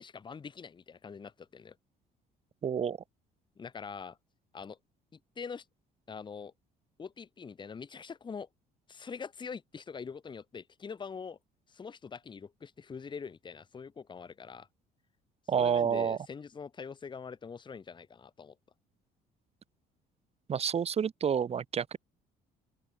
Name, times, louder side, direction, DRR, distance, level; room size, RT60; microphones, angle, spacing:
voice 1, 0.0-1.8 3.6-4.2 4.5-4.8 5.4-5.6 6.1-6.5 7.0-8.5 8.9-11.4 11.7-14.7 15.5-18.6, left 6 dB, 30° left, 1.3 m, -44 dB
voice 2, 2.6-3.0 15.5-16.2 20.5-22.0, right 7 dB, 35° right, 1.3 m, -29 dB
open air
cardioid pair, 110°, 17 cm